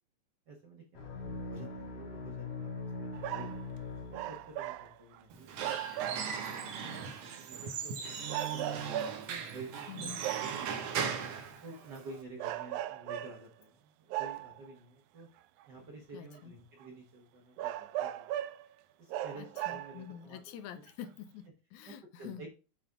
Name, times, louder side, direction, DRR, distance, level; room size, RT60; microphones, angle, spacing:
voice 1, 0.5-2.7 3.0-3.6 4.1-5.5 6.1-11.0 11.6-15.3 15.7-18.5 19.0-20.4 21.9-22.5, right 2 dB, 55° right, 1.2 m, -50 dB
sound 1, 0.9-4.8, left 3 dB, 60° left, 2.7 m, -42 dB
sound 2, 3.1-3.6 4.1-5.2 5.6-6.5 7.2-7.3 8.3-9.4 10.2-10.7 11.7-12.0 12.4-13.4 14.1-14.7 15.6-15.7 16.3-16.4 16.8-16.9 17.6-18.7 19.1-20.1 20.9-21.0, right 13 dB, 90° right, 2.0 m, -37 dB
Squeak / Wood, 5.3-12.2, right 6 dB, 75° right, 2.2 m, -38 dB
voice 2, 9.9-10.2 16.1-16.5 19.4-22.5, left 9 dB, 85° left, 2.0 m, -47 dB
7.6 x 4.4 x 3.5 m
omnidirectional pair, 3.3 m